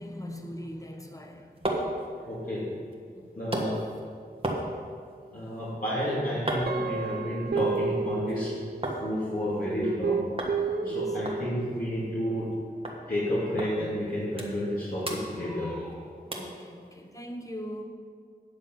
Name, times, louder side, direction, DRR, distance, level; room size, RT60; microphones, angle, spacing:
voice 1, 0.0-1.7 3.1-3.3 6.8-7.2 10.8-11.2 16.3-17.8, equal, 20° left, 3 dB, 1.1 m, -41 dB
sound 1, 1.1-9.0 9.3-10.0 10.4-10.6 10.8-10.9 11.2-12.6 12.8-13.0 13.6-13.7 14.1-14.7 15.0-15.9 16.3-16.6 17.1-17.2, right 1 dB, 35° right, 1.4 m, -36 dB
voice 2, 2.3-2.6 3.4-3.8 5.3-8.5 9.0-10.3 10.8-12.5 13.1-16.0, equal, 55° left, -10 dB, 2.6 m, -30 dB
Guitar, 6.7-9.1 9.8-11.8, right 5 dB, 70° right, 0.5 m, -31 dB
9.6 x 6.7 x 5.8 m, 2.1 s
wide cardioid pair, 70°, 17 cm